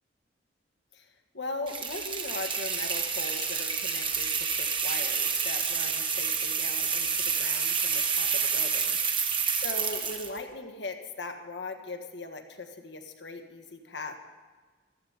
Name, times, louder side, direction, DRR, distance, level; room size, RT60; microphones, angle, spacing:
voice 1, 1.3-9.0 9.3-14.2, left 3 dB, 75° left, 6 dB, 1.5 m, -39 dB
sound 1, 1.7-10.4, right 6 dB, 25° right, 1.2 m, -29 dB
14.5 x 13.0 x 5.1 m, 1.4 s
head